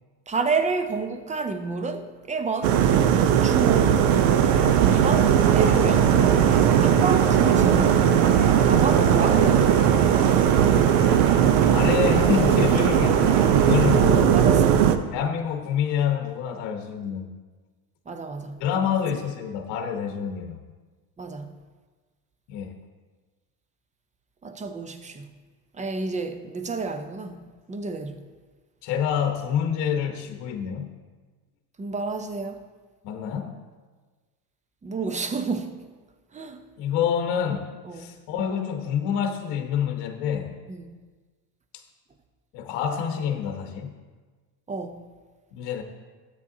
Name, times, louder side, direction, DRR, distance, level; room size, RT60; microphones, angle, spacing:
voice 1, 0.3-2.7 3.4-4.0 4.9-6.2 6.8-8.1 8.6-9.7 13.9-15.0 18.1-18.8 21.2-21.5 24.4-25.3 25.8-27.4 27.7-28.2 31.8-32.6 34.8-35.7 36.3-36.6 37.9-38.1 40.7-41.0 44.7-45.1, right 4 dB, 15° right, 0.5 m, -29 dB
sound 1, 2.6-15.0, right 9 dB, 70° right, 0.8 m, -18 dB
sound 2, 2.9-14.0, right 2 dB, 55° right, 2.0 m, -33 dB
voice 2, 11.7-14.5 15.1-17.3 18.6-20.6 22.5-22.8 28.8-30.9 33.0-33.5 36.8-40.5 42.5-43.9 45.5-45.8, left 8 dB, 60° left, 1.0 m, -27 dB
13.0 x 8.4 x 2.7 m
supercardioid pair, 100°, 46 cm